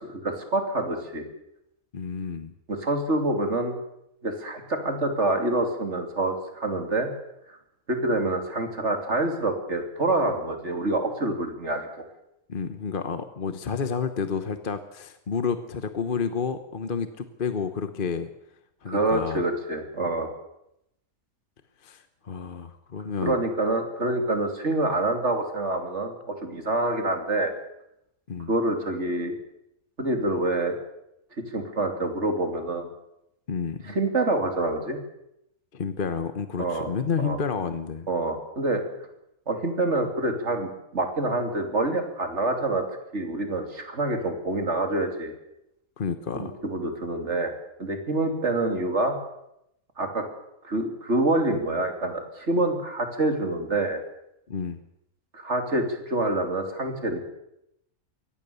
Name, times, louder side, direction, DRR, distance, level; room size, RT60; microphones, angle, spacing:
voice 1, 0.2-1.2 2.7-3.7 4.2-7.1 7.9-11.9 18.9-20.3 23.2-27.5 28.5-29.3 30.0-30.7 31.5-32.9 33.9-35.0 36.6-36.9 37.2-37.4 38.1-38.8 39.5-42.8 43.1-45.3 46.3-47.5 47.8-49.1 50.0-50.2 50.6-54.0 55.3-57.2, right 2 dB, 50° right, 5 dB, 3.3 m, -26 dB
voice 2, 1.9-2.5 12.5-18.3 18.8-19.4 21.8-23.4 28.3-28.5 33.5-33.9 35.7-38.1 46.0-46.6 54.5-54.8, left 6 dB, 40° left, 9 dB, 1.1 m, -30 dB
23.0 x 18.0 x 6.9 m, 0.81 s
omnidirectional pair, 1.6 m